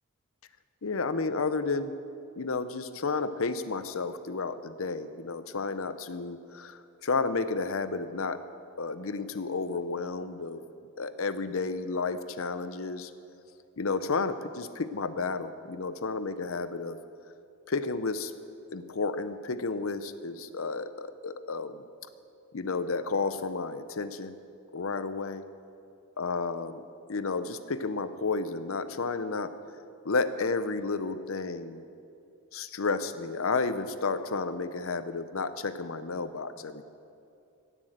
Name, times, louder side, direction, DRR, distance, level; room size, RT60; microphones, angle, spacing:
voice 1, 0.8-1.9 2.4-8.4 8.8-10.6 11.0-13.1 13.8-17.0 17.7-18.3 18.7-21.8 22.5-24.3 24.7-25.5 26.2-26.8 27.1-29.5 30.0-31.9 32.5-36.8, left 4 dB, 65° left, 12 dB, 0.7 m, -32 dB
16.5 x 7.7 x 7.9 m, 2.6 s
head